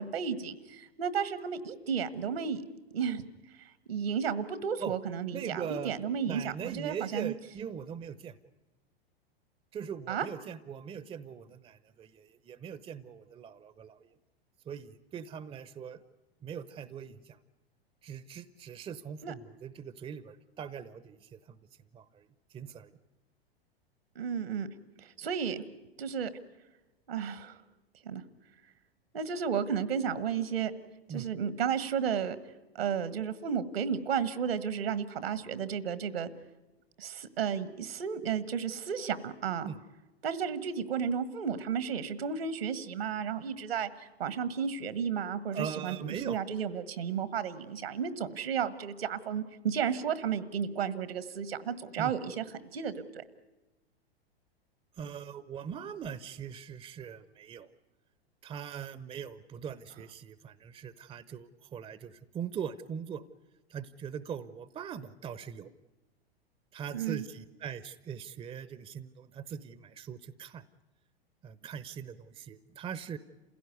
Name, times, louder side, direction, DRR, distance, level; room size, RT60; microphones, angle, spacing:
voice 1, 0.0-2.6 2.9-3.3 3.6-7.3 10.1-10.3 19.2-19.3 24.1-24.7 25.0-25.6 26.0-26.3 27.1-27.6 28.0-28.2 29.1-30.7 31.1-32.4 32.7-36.3 37.0-39.7 40.2-52.4 52.7-53.2 66.9-67.2, right 7 dB, 70° right, 15 dB, 1.5 m, -33 dB
voice 2, 5.3-5.9 6.3-8.3 9.7-14.1 14.7-16.0 16.4-17.4 18.0-21.6 21.9-22.9 31.1-31.3 39.6-39.8 45.5-46.4 52.0-52.1 54.9-57.7 58.4-63.2 63.7-65.7 66.7-70.6 71.4-73.2, right 7 dB, 20° right, 17 dB, 0.7 m, -41 dB
28.0 x 16.5 x 9.5 m, 1.1 s
figure-of-eight pair, 95°, 31 cm